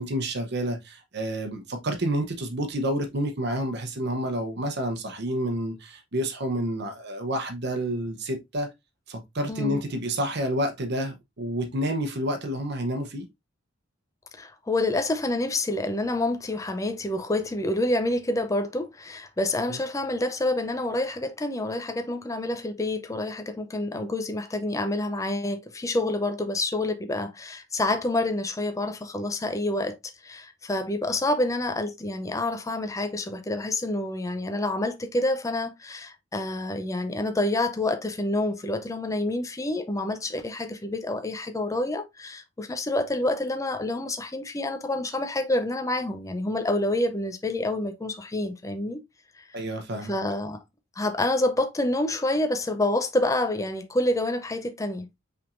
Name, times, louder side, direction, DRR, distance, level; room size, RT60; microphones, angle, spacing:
voice 1, 0.0-8.7 9.1-13.3 19.7-19.8 49.5-50.2, right 1 dB, 55° right, 0.8 m, -29 dB
voice 2, 9.5-9.8 14.4-30.0 30.2-49.0 49.4-49.5 50.0-50.6 51.0-55.1, left 1 dB, 15° left, 0.5 m, -28 dB
5.7 x 3.5 x 2.5 m
head